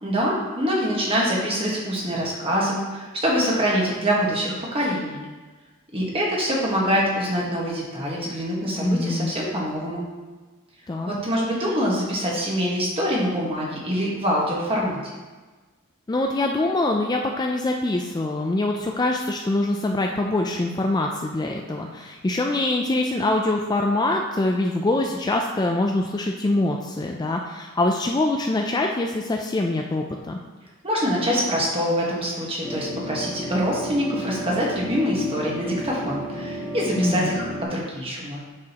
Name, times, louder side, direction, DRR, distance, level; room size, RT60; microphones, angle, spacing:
voice 1, 0.0-5.2 5.9-10.0 11.1-15.0 30.8-38.4, equal, 25° right, -4 dB, 1.5 m, -25 dB
voice 2, 8.8-9.3 10.9-11.1 16.1-30.4 37.0-37.3, left 2 dB, 20° left, 2 dB, 0.3 m, -24 dB
sound 1, 32.6-37.6, equal, 5° right, 1.1 m, -32 dB
7.4 x 6.2 x 2.9 m, 1.3 s
head